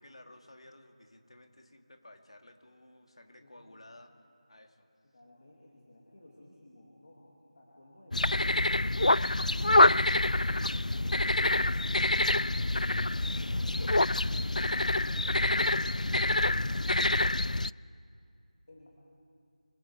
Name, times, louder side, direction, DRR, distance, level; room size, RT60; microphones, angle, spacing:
voice 1, 0.0-4.9, left 1 dB, 50° left, 4 dB, 2.7 m, -55 dB
voice 2, 3.4-3.7 5.1-10.5 10.9-13.5 13.8-16.2 16.7-17.5 18.7-18.9, left 1 dB, 30° left, -4 dB, 2.7 m, -56 dB
sound 1, 8.1-17.7, left 2 dB, 85° left, 0.4 m, -26 dB
25.5 x 24.5 x 4.8 m, 2.4 s
figure-of-eight pair, 175°, 4 cm